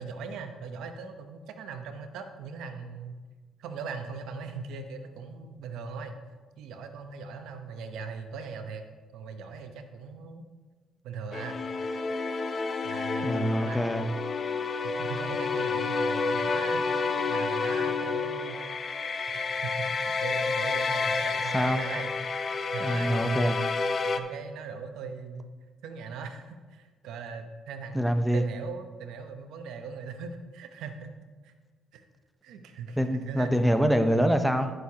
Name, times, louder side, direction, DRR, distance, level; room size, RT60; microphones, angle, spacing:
voice 1, 0.0-3.2 3.6-6.2 6.6-8.8 9.1-10.4 11.0-11.6 12.8-13.9 14.8-18.6 19.0-22.1 22.7-23.3 24.2-25.5 25.8-31.1 31.4-31.5 31.9-32.0 32.4-33.5, right 5 dB, 85° right, 7 dB, 0.8 m, -40 dB
sound 1, 11.3-24.2, left 4 dB, 45° left, 0.6 m, -30 dB
voice 2, 13.2-14.1 21.5-21.8 22.8-23.6 27.9-28.4 33.0-34.7, equal, ahead, 7 dB, 0.7 m, -25 dB
14.0 x 6.5 x 2.9 m, 1.4 s
cardioid pair, 90°, 0 cm